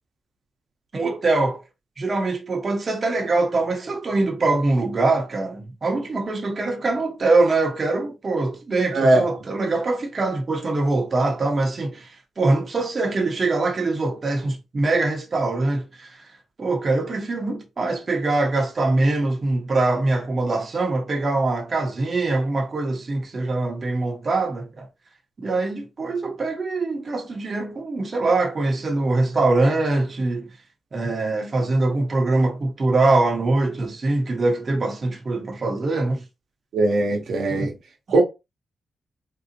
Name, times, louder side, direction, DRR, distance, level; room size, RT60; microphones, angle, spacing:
voice 1, 0.9-1.6 2.0-16.3 16.6-24.9 25.4-30.6 30.9-36.2 37.5-37.7, right 2 dB, 45° right, 0.8 m, -23 dB
voice 2, 8.9-9.2 36.7-37.7 38.1-38.2, right 2 dB, 75° right, 0.9 m, -19 dB
3.7 x 2.0 x 2.8 m
cardioid pair, 65°, 0 cm